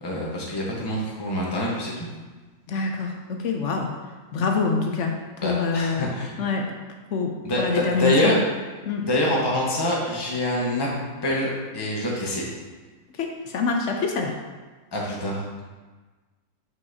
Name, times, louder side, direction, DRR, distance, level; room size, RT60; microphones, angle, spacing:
voice 1, 0.0-2.1 5.4-6.4 7.4-8.4 9.0-10.9 11.2-12.4 14.9-15.4, left 1 dB, 20° left, -4 dB, 0.9 m, -25 dB
voice 2, 2.7-3.9 4.3-5.1 5.4-6.1 6.4-6.6 7.1-7.3 7.6-8.3 8.9-9.0 13.2-14.3, left 4 dB, 65° left, 2 dB, 0.7 m, -25 dB
6.3 x 5.5 x 2.7 m, 1.3 s
omnidirectional pair, 1.8 m